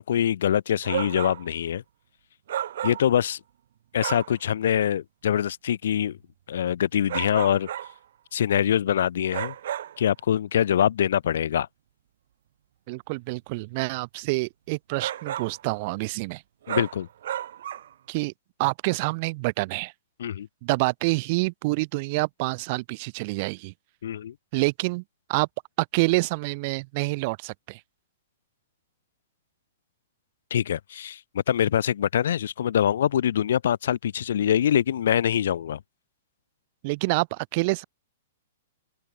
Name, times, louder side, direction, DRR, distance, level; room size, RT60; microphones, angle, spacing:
voice 1, 0.0-1.8 2.8-3.4 3.9-6.2 6.5-7.7 8.3-9.5 10.0-11.7 16.7-17.1 20.2-20.5 24.0-24.3 30.5-35.8, left 9 dB, 70° left, 0.4 m, -24 dB
sound 1, 0.8-1.5 2.5-3.2 4.0-4.4 7.1-8.0 9.3-10.0 15.0-15.6 16.7-17.9, right 11 dB, 60° right, 0.8 m, -32 dB
voice 2, 12.9-16.4 18.1-18.3 18.6-19.9 20.6-23.7 24.5-25.0 25.3-25.5 25.9-27.8 36.8-37.8, right 26 dB, 40° right, 2.0 m, -27 dB
hypercardioid pair, 160°, 0 cm